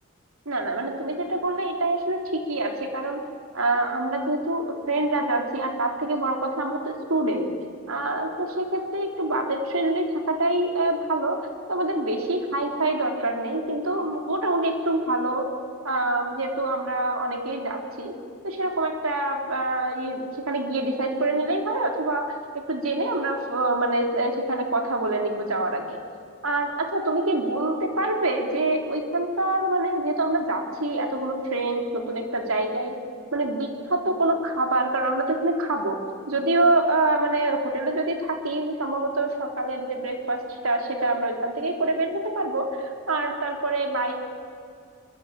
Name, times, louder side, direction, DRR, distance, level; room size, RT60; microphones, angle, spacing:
voice 1, 0.5-3.2 3.5-7.5 7.9-15.5 15.8-18.1 18.4-26.0 26.4-33.0 33.3-36.0 36.3-44.1, right 2 dB, 80° right, 3 dB, 3.7 m, -26 dB
25.0 x 23.0 x 8.8 m, 2.2 s
head